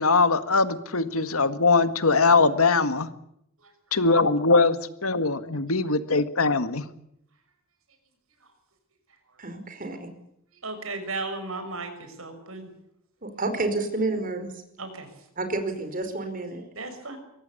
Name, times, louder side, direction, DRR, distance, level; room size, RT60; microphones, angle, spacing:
voice 1, 0.0-3.1 3.9-6.8, left 3 dB, 90° left, 11 dB, 1.8 m, -21 dB
voice 2, 9.4-10.1 13.2-14.5 15.4-16.6, right 2 dB, 40° right, 7 dB, 4.9 m, -29 dB
voice 3, 10.6-12.7 14.8-15.1 16.7-17.2, right 3 dB, 75° right, 8 dB, 6.3 m, -35 dB
23.5 x 18.0 x 8.5 m, 0.75 s
head